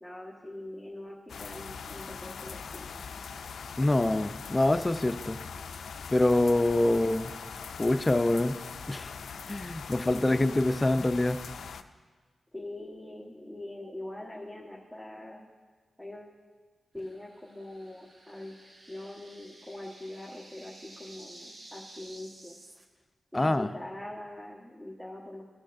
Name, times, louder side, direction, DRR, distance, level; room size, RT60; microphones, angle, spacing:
voice 1, 0.0-3.2 10.2-10.6 12.5-15.5 16.0-16.4 16.9-22.6 23.3-25.5, left 1 dB, 5° right, -5 dB, 1.2 m, -43 dB
sound 1, 1.3-11.8, left 6 dB, 85° left, 0.4 m, -42 dB
voice 2, 3.8-5.4 6.1-7.3 7.8-8.6 8.9-9.1 9.5-11.4 23.3-23.7, left 2 dB, 25° left, 9 dB, 0.5 m, -25 dB
sound 2, 17.0-22.9, right 1 dB, 55° right, 1.1 m, -52 dB
18.5 x 6.3 x 2.6 m, 1.4 s
cardioid pair, 65°, 0 cm